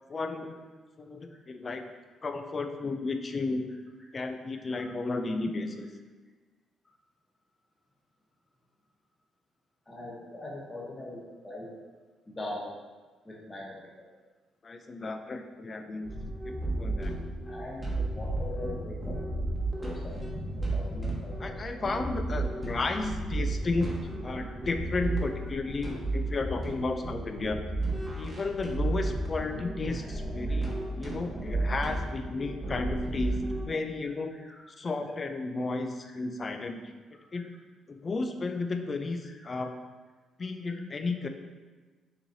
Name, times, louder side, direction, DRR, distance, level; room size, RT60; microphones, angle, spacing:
voice 1, 0.1-0.6 1.0-1.9 2.2-3.7 4.1-5.9 14.6-16.1 16.4-17.1 21.4-27.6 28.2-30.7 31.0-34.4 34.8-36.9 37.3-37.5 37.9-39.7 40.4-41.3, left 3 dB, 35° left, 6 dB, 0.4 m, -33 dB
voice 2, 9.9-11.7 12.3-12.7 13.2-13.8 17.5-19.3 19.8-20.1 20.5-21.5 24.3-24.5 34.3-34.6 36.0-36.2 37.3-37.4 39.4-39.5 40.7-40.8, left 1 dB, 20° left, -5 dB, 1.0 m, -42 dB
sound 1, 16.0-33.7, right 2 dB, 15° right, 1.1 m, -33 dB
6.5 x 3.0 x 2.7 m, 1.3 s
cardioid pair, 90°, 0 cm